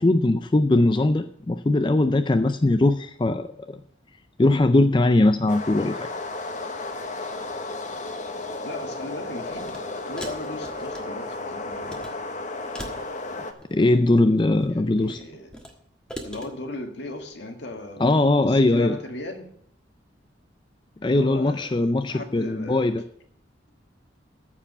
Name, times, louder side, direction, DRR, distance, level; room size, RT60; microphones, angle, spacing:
voice 1, 0.0-3.8 4.4-6.1 13.7-15.2 18.0-19.0 21.0-23.0, left 2 dB, 25° left, 0.4 m, -20 dB
sound 1, 5.5-13.5, left 2 dB, 40° left, 1.0 m, -33 dB
voice 2, 8.6-12.2 14.7-15.5 16.2-19.5 21.0-22.9, left 2 dB, 65° left, 1.7 m, -37 dB
sound 2, 9.5-9.8 10.2-11.3 11.7-12.1 12.7-13.9 14.4-15.7 16.1-16.5, equal, 5° left, 1.4 m, -40 dB
14.0 x 4.9 x 8.0 m
head